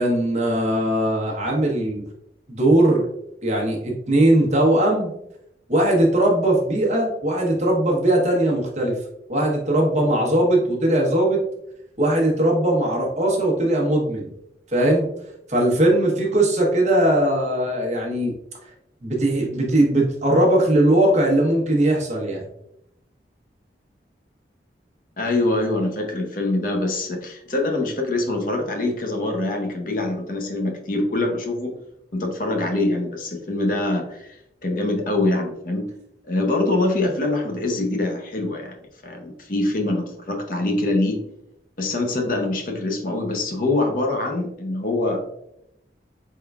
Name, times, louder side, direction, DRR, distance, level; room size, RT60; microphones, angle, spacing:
voice 1, 0.0-2.0 2.5-3.0 3.4-5.1 5.7-9.0 9.3-11.4 12.0-14.3 14.7-15.1 15.5-18.3 19.0-22.4, right 1 dB, 40° right, -2 dB, 1.0 m, -19 dB
voice 2, 25.2-31.7 32.1-35.9 36.3-38.8 39.0-41.2 41.8-45.3, left 2 dB, 50° left, 2 dB, 0.7 m, -24 dB
4.4 x 3.7 x 2.3 m, 0.80 s
head